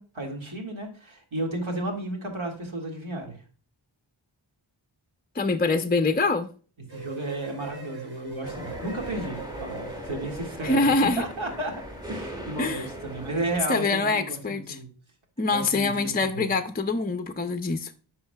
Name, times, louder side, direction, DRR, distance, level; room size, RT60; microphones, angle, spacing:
voice 1, 0.0-3.4 6.9-11.7 12.1-14.9 15.5-16.5, right 1 dB, 75° right, 2.0 m, -33 dB
voice 2, 5.4-6.5 10.6-11.2 12.6-12.9 13.7-14.8 15.4-17.9, left 3 dB, 20° left, 0.5 m, -24 dB
sound 1, 6.9-14.0, right 5 dB, 50° right, 3.7 m, -45 dB
sound 2, 8.4-13.6, equal, 10° right, 1.6 m, -39 dB
10.0 x 5.6 x 2.2 m
wide cardioid pair, 65°, 48 cm